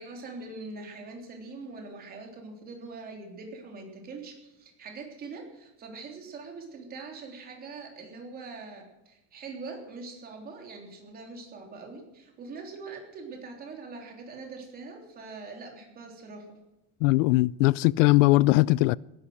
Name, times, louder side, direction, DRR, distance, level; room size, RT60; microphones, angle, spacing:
voice 1, 0.0-16.6, right 3 dB, 25° right, 3.4 m, -43 dB
voice 2, 17.0-19.0, left 20 dB, 80° left, 0.5 m, -20 dB
18.5 x 11.5 x 6.3 m
cardioid pair, 175°, 38 cm